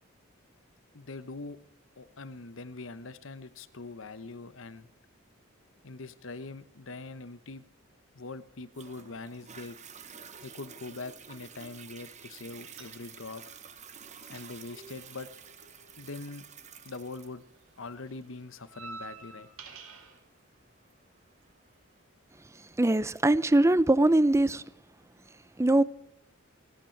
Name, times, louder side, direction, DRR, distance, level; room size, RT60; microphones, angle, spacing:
voice 1, 0.9-1.6 2.0-4.9 5.8-7.6 8.1-9.8 10.4-13.4 14.3-15.3 16.0-16.4 16.8-17.4 17.8-19.5, left 3 dB, 70° left, 1.0 m, -42 dB
Toilet flush, 8.7-21.8 22.4-22.5, right 7 dB, 35° right, 1.1 m, -50 dB
sound 1, 12.6-13.4 13.7-17.1 17.3-20.2, right 3 dB, 85° right, 2.4 m, -49 dB
voice 2, 22.8-24.6 25.6-25.8, right 1 dB, 15° right, 0.5 m, -22 dB
26.5 x 9.1 x 4.6 m
head